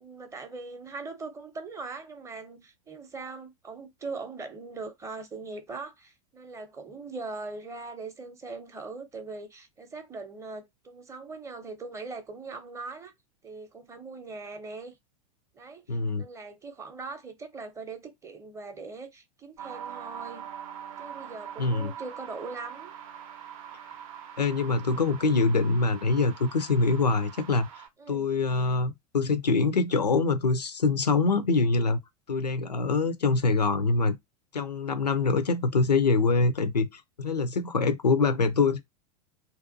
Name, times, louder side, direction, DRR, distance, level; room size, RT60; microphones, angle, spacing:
voice 1, 0.0-13.1 13.4-15.0 15.5-20.5 21.0-22.9 28.0-28.3, right 4 dB, 15° right, 0.6 m, -41 dB
voice 2, 15.9-16.2 21.6-21.9 24.4-27.7 28.1-32.0 32.3-34.2 34.5-38.8, left 4 dB, 85° left, 0.4 m, -24 dB
sound 1, 19.6-27.9, right 9 dB, 55° right, 0.6 m, -43 dB
2.6 x 2.2 x 2.5 m
figure-of-eight pair, 90°, 20 cm